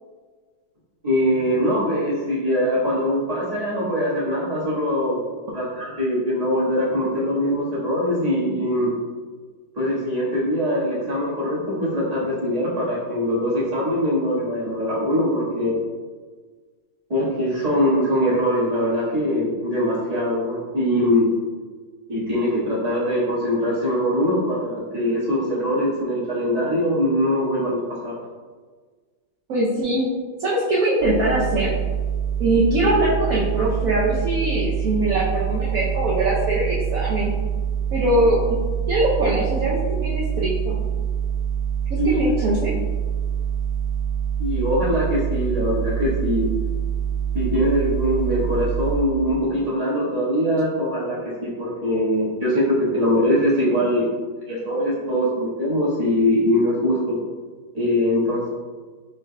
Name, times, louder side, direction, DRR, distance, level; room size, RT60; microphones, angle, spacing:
voice 1, 1.0-5.2 5.5-8.9 9.7-15.8 17.1-21.3 22.1-28.1 41.9-42.2 44.4-46.5 47.3-54.1 54.5-57.1 57.7-58.5, equal, 20° right, -9 dB, 1.4 m, -22 dB
voice 2, 29.5-30.0 30.4-31.7 32.4-37.3 37.9-38.4 38.9-40.8 41.9-42.7, right 1 dB, 65° right, -6 dB, 0.9 m, -22 dB
sound 1, 31.0-49.0, right 8 dB, 55° left, 1.0 m, -25 dB
5.5 x 4.0 x 2.2 m, 1.5 s
omnidirectional pair, 2.2 m